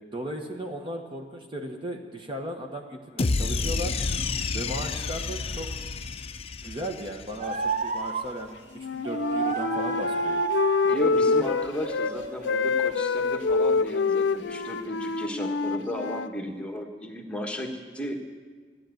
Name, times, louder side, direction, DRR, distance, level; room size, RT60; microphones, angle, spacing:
voice 1, 0.1-4.0 4.5-5.7 6.6-10.4, right 1 dB, 30° right, 2 dB, 1.2 m, -36 dB
sound 1, 3.2-7.5, left 3 dB, 35° left, 0.5 m, -30 dB
sound 2, 7.4-8.5 9.0-11.2 11.6-14.0 14.4-14.9, right 4 dB, 45° right, 0.7 m, -32 dB
Wind instrument woodwind instrument, 8.7-12.1 12.4-16.3, left 4 dB, 80° left, 0.5 m, -26 dB
voice 2, 10.8-18.2, equal, 5° left, 1 dB, 1.4 m, -34 dB
14.0 x 10.5 x 7.9 m, 1.5 s
head